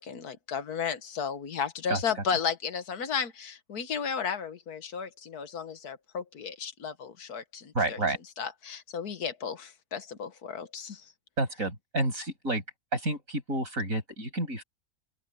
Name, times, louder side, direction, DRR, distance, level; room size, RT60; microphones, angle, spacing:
voice 1, 0.0-8.0 8.4-11.0, left 6 dB, 90° left, 1.8 m, -34 dB
voice 2, 7.7-8.2 11.4-12.6 12.9-14.6, right 2 dB, 60° right, 7.6 m, -30 dB
omnidirectional pair, 1.6 m